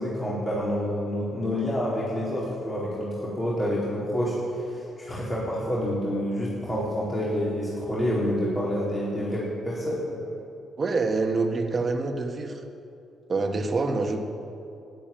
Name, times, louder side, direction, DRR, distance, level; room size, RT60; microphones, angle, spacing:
voice 1, 0.0-10.2, equal, 25° left, -7 dB, 4.1 m, -28 dB
voice 2, 10.8-12.6 13.3-14.2, right 3 dB, 40° right, 4 dB, 1.6 m, -26 dB
13.5 x 11.0 x 8.9 m, 2.8 s
cardioid pair, 90°, 0 cm